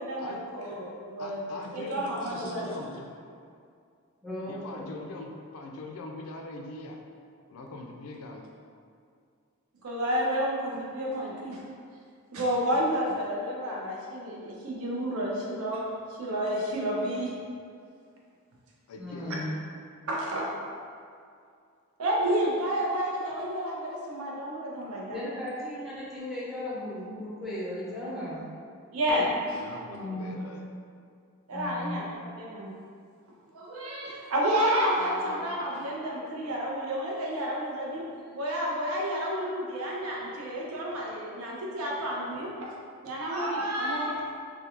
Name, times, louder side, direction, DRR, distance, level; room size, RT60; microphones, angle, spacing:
voice 1, 0.0-1.4 1.7-2.7 9.8-11.6 12.3-15.9 16.2-17.3 20.1-20.5 22.0-25.2 28.9-29.3 31.5-32.0 32.4-32.7 33.5-38.0 38.3-42.7 43.0-44.2, equal, 85° right, -3 dB, 0.5 m, -30 dB
voice 2, 1.2-3.3 4.5-7.0 7.5-8.4 18.9-19.5 29.5-30.6 35.0-35.5 35.8-35.9, left 2 dB, 90° left, 2 dB, 0.3 m, -42 dB
voice 3, 4.2-5.1 19.0-19.6 25.1-28.4 29.0-29.4 29.9-30.4 31.5-32.1, left 1 dB, ahead, -10 dB, 0.6 m, -36 dB
2.3 x 2.2 x 2.9 m, 2.3 s
head